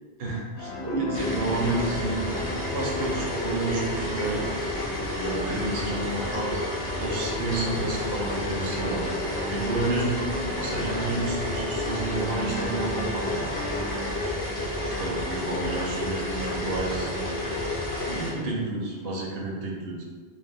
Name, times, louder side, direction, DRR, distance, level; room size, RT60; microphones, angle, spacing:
voice 1, 0.2-2.3 2.7-4.5 5.0-10.3 10.6-13.4 14.8-17.5 18.1-20.0, right 2 dB, 70° right, -2 dB, 0.8 m, -31 dB
sound 1, 0.6-14.9 15.3-16.5 17.1-17.2 17.4-17.6 18.4-19.4, left 1 dB, 75° left, 0.8 m, -37 dB
sound 2, 1.1-18.3, left 1 dB, 40° left, 0.6 m, -31 dB
2.5 x 2.1 x 3.4 m, 1.5 s
omnidirectional pair, 1.1 m